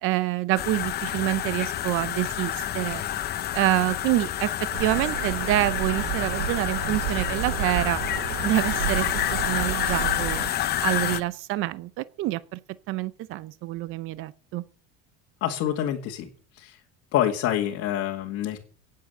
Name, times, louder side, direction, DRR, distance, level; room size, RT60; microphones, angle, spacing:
voice 1, 0.0-3.0 3.5-4.5 4.8-8.0 8.4-10.4 10.8-12.6 12.9-14.6, right 16 dB, 45° right, 0.6 m, -27 dB
sound 1, 0.6-11.2, left 11 dB, 30° left, 0.8 m, -29 dB
sound 2, 4.7-10.5, right 13 dB, 75° right, 1.0 m, -32 dB
voice 2, 15.4-16.8 17.1-18.6, left 11 dB, 50° left, 2.0 m, -27 dB
18.0 x 7.6 x 6.6 m
cardioid pair, 165°, 31 cm